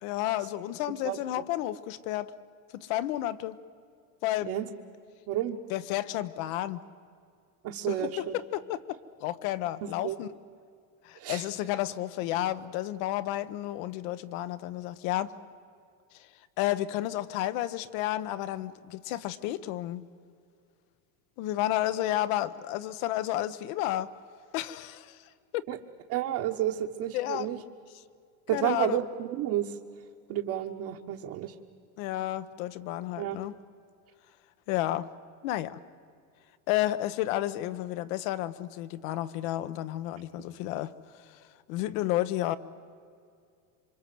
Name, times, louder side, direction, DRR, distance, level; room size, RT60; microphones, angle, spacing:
voice 1, 0.0-2.3 2.7-3.6 4.2-4.5 5.7-6.8 7.9-10.3 11.0-15.3 16.1-16.3 16.6-20.0 21.4-24.1 24.5-25.6 27.1-27.5 28.5-29.0 32.0-33.6 34.7-35.1 35.4-35.8 36.7-41.4 41.7-42.6, left 14 dB, 65° left, 14 dB, 1.2 m, -31 dB
voice 2, 5.3-5.6 7.6-8.3 9.8-10.1 11.2-11.4 25.7-25.8 26.1-27.6 28.5-29.7 30.3-31.5 33.2-33.4, right 12 dB, 50° right, 0 dB, 1.4 m, -31 dB
27.5 x 24.5 x 7.8 m, 2.3 s
supercardioid pair, 145°, 43 cm